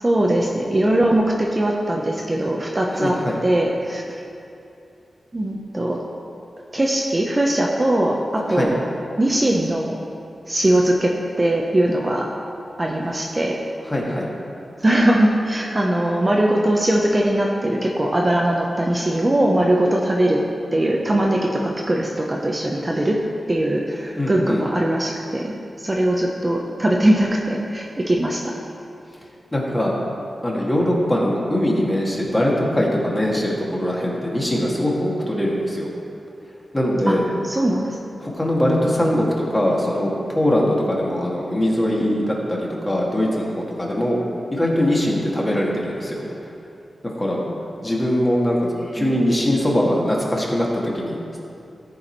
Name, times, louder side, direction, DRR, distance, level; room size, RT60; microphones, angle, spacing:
voice 1, 0.0-4.0 5.3-6.0 6.7-8.8 9.2-10.0 10.5-12.3 12.8-13.6 14.8-20.4 20.7-23.2 23.5-28.5 37.1-37.2 37.4-38.0 49.0-49.2, right 1 dB, 25° right, -1 dB, 0.8 m, -20 dB
voice 2, 2.9-3.4 8.5-8.7 13.9-14.3 24.2-24.6 29.5-30.0 30.4-35.9 36.7-37.3 38.2-44.2 44.5-46.3 47.0-47.4 47.8-48.6 48.9-51.4, left 1 dB, 15° left, -3 dB, 1.9 m, -21 dB
14.0 x 4.8 x 4.6 m, 2.6 s
wide cardioid pair, 80°, 0 cm